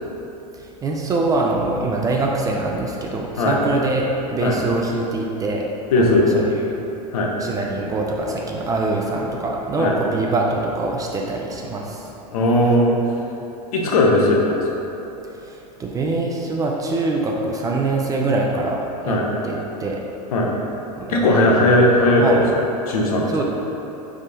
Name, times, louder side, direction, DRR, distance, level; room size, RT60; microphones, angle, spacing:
voice 1, 0.5-5.6 6.0-6.6 7.4-12.1 15.4-19.2 19.4-20.0 21.0-21.9 22.2-22.5 23.3-23.4, right 2 dB, 15° right, -1 dB, 0.4 m, -24 dB
voice 2, 5.9-6.3 7.1-7.3 9.8-9.9 12.3-13.0 13.7-14.6 19.1-19.3 20.3-20.5 21.1-22.4 22.9-23.3, left 1 dB, 60° left, -1 dB, 0.7 m, -17 dB
5.1 x 3.5 x 2.6 m, 3.0 s
figure-of-eight pair, 85°, 21 cm